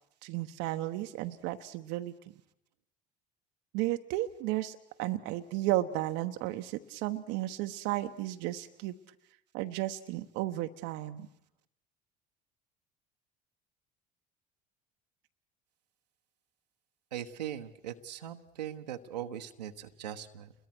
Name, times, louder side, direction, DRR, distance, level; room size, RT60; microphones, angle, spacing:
voice 1, 0.2-2.1 3.7-8.9 9.5-11.3, right 16 dB, 65° right, 8 dB, 1.0 m, -33 dB
voice 2, 17.1-20.5, right 10 dB, 85° right, 4 dB, 1.2 m, -40 dB
29.5 x 22.0 x 6.1 m, 0.78 s
hypercardioid pair, 65°, 21 cm